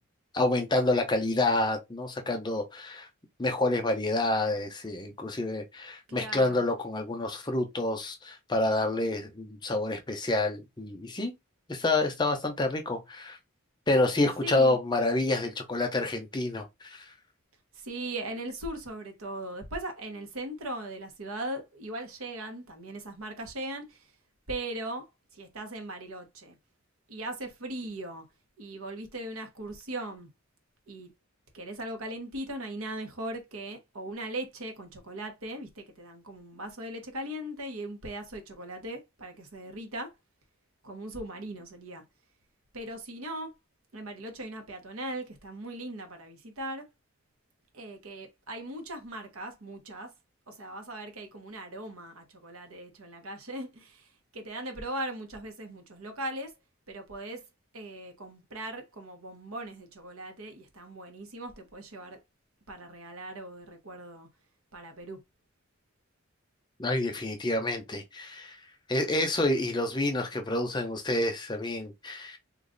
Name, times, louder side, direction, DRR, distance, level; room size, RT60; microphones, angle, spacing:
voice 1, 0.3-3.1 3.4-11.3 11.7-13.4 13.9-17.1 66.8-68.6 68.9-72.4, left 2 dB, 20° left, 0.6 m, -28 dB
voice 2, 6.1-6.7 14.4-14.8 17.7-24.1 24.5-25.1 25.3-26.6 27.1-28.3 28.6-30.3 30.9-31.1 31.5-40.1 40.8-42.0 42.7-43.5 43.9-46.9 47.7-50.1 50.5-56.5 56.9-57.4 57.7-62.2 62.7-64.3 64.7-65.2, right 1 dB, 85° right, 1.0 m, -39 dB
3.1 x 2.4 x 3.8 m
head